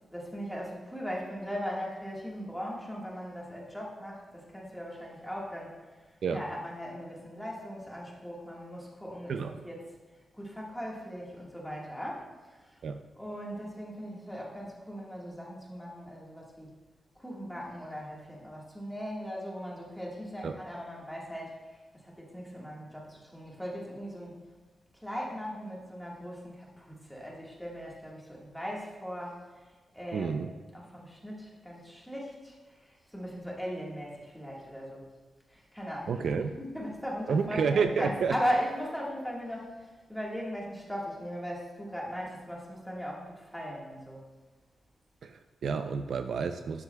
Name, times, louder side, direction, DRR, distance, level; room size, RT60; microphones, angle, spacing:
voice 1, 0.1-5.7 6.3-9.8 10.3-12.8 13.2-16.7 17.1-24.4 25.0-29.4 29.9-30.4 30.7-35.1 35.5-44.3, equal, ahead, -4 dB, 1.5 m, -38 dB
voice 2, 9.3-9.6 12.8-13.0 20.4-20.6 30.1-30.5 36.1-36.5 37.3-38.3 45.2-46.8, right 5 dB, 60° right, 8 dB, 0.4 m, -30 dB
12.0 x 9.6 x 2.2 m, 1.2 s
wide cardioid pair, 180°, 0 cm